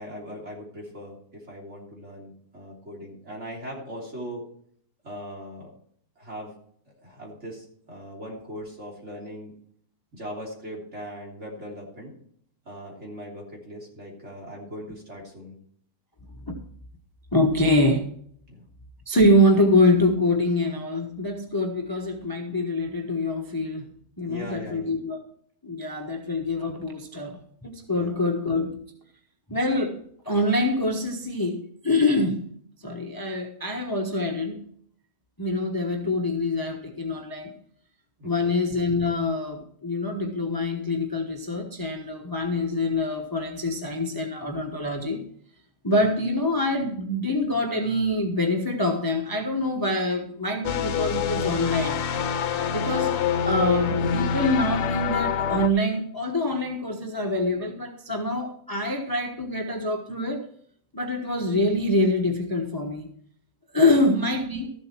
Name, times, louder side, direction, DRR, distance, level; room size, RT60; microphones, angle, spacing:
voice 1, 0.0-4.4 5.0-5.7 6.2-6.5 7.0-9.5 10.1-12.1 12.7-15.6 18.5-18.7 24.3-24.9 27.9-28.2 38.2-38.5 63.9-64.1, equal, 45° right, -2 dB, 3.7 m, -39 dB
voice 2, 17.3-18.1 19.1-23.9 24.2-25.2 25.6-28.8 29.5-32.5 32.8-34.7 35.4-37.5 38.2-45.2 45.8-52.0 52.7-53.1 53.4-60.4 60.9-63.1 63.7-64.7, left 1 dB, 15° left, 2 dB, 1.0 m, -25 dB
sound 1, 50.6-55.7, left 7 dB, 65° left, 1.1 m, -26 dB
14.0 x 7.6 x 4.5 m, 0.62 s
omnidirectional pair, 1.6 m